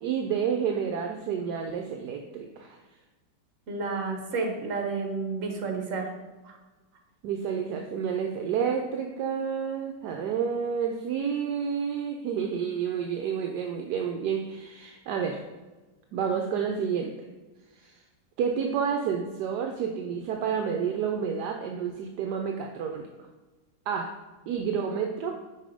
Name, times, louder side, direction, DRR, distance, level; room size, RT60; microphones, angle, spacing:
voice 1, 0.0-2.8 7.2-15.4 16.1-17.1 17.8-17.9 18.4-23.1 23.9-24.1 24.5-25.4, right 7 dB, 75° right, 3 dB, 1.1 m, -29 dB
voice 2, 3.7-6.1 6.4-6.6, right 4 dB, 50° right, 3 dB, 1.4 m, -31 dB
5.5 x 4.9 x 5.0 m, 1.2 s
omnidirectional pair, 1.9 m